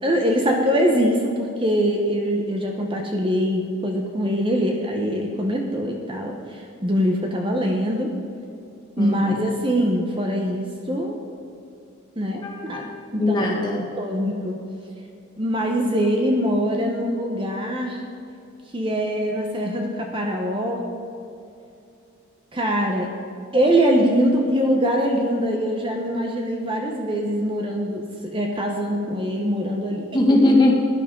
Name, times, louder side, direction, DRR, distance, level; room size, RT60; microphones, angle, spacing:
voice 1, 0.0-8.1 9.0-11.2 12.2-12.8 13.1-13.5 14.0-14.6 15.4-18.0 18.7-20.8 22.5-23.1 23.5-30.0, equal, 25° right, 1 dB, 1.0 m, -23 dB
voice 2, 9.0-9.4 12.4-13.9 30.1-30.9, left 2 dB, 20° left, -2 dB, 1.8 m, -20 dB
16.5 x 10.5 x 3.8 m, 2.7 s
head